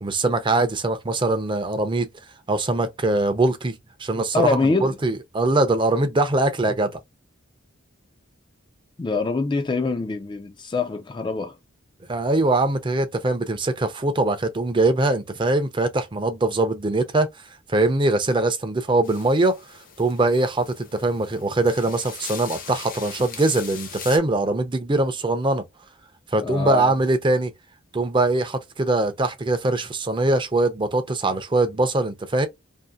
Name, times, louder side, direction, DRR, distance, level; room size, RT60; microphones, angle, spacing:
voice 1, 0.0-2.1 2.5-4.6 4.8-6.9 12.1-17.3 17.7-19.6 20.0-25.6 26.3-27.5 27.9-32.5, right 2 dB, 25° right, 0.5 m, -22 dB
voice 2, 4.3-5.0 9.0-11.6 26.4-27.0, left 4 dB, 25° left, 0.4 m, -24 dB
sound 1, 19.0-24.2, left 6 dB, 45° left, 0.8 m, -40 dB
2.7 x 2.6 x 2.3 m
head